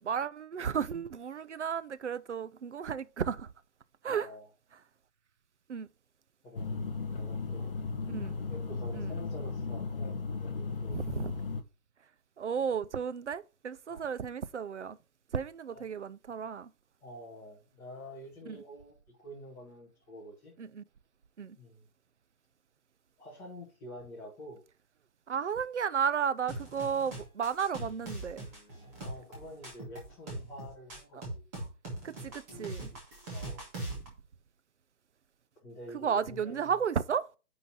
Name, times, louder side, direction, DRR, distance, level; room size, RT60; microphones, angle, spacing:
voice 1, 0.0-3.5 4.0-4.3 5.7-5.9 8.1-8.3 8.9-9.1 10.9-11.3 12.4-15.0 15.3-16.7 18.5-18.6 20.6-20.8 21.4-21.6 25.3-28.5 32.0-32.9 35.9-37.3, right 7 dB, 50° right, 0.5 m, -33 dB
voice 2, 4.0-4.5 6.4-6.7 7.1-7.7 8.5-11.0 13.9-14.1 15.7-15.8 17.0-20.5 21.6-21.9 23.2-24.6 29.0-31.4 33.3-33.7 35.6-36.8, equal, 5° left, 1.4 m, -48 dB
sound 1, 6.6-11.6, left 4 dB, 35° left, 0.9 m, -36 dB
sound 2, 26.5-34.1, right 2 dB, 10° right, 1.3 m, -41 dB
9.4 x 3.9 x 4.2 m
hypercardioid pair, 170°, 46 cm